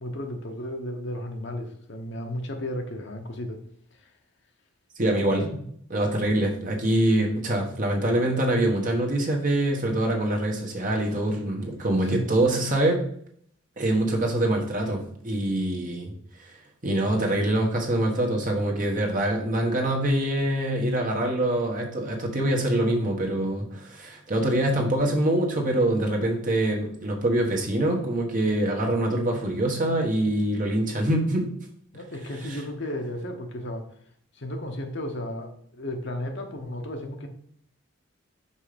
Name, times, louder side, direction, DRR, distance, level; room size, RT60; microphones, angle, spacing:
voice 1, 0.0-3.6 4.0-4.1 5.4-5.6 12.0-12.3 31.9-33.9 34.3-37.3, left 1 dB, 55° left, 0.9 m, -34 dB
voice 2, 5.0-5.4 5.9-13.0 13.8-16.1 16.8-31.5, right 1 dB, 40° right, 1.3 m, -24 dB
5.5 x 5.3 x 5.0 m
head